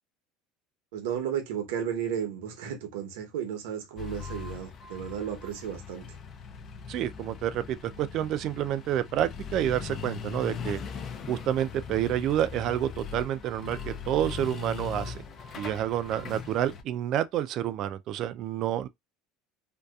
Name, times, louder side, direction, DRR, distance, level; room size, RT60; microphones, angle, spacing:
voice 1, 0.9-6.0, right 9 dB, 90° right, 0.8 m, -33 dB
sound 1, 4.0-16.8, left 6 dB, 40° left, 0.4 m, -40 dB
voice 2, 6.9-10.8 11.3-15.2 15.6-18.9, right 11 dB, 50° right, 0.3 m, -29 dB
2.6 x 2.2 x 2.3 m
supercardioid pair, 125°, 0 cm